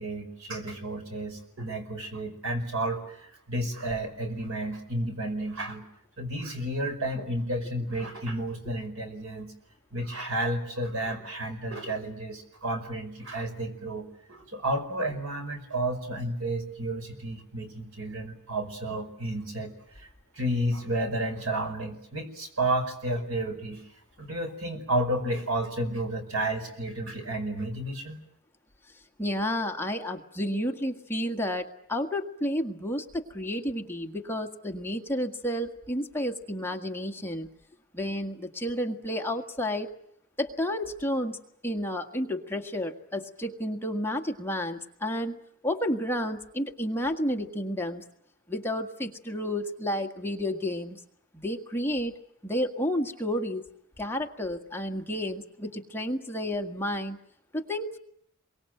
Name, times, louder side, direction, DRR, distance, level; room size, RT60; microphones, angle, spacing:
voice 1, 0.0-5.8 6.2-9.5 9.9-20.1 20.3-23.8 24.2-28.2, right 1 dB, 70° right, 6 dB, 5.4 m, -31 dB
voice 2, 29.2-37.5 37.9-39.9 40.4-41.4 41.6-48.0 48.5-51.0 51.3-52.2 52.4-53.6 54.0-57.2 57.5-58.0, left 1 dB, 10° left, 3 dB, 1.7 m, -31 dB
28.5 x 23.5 x 7.8 m, 0.72 s
head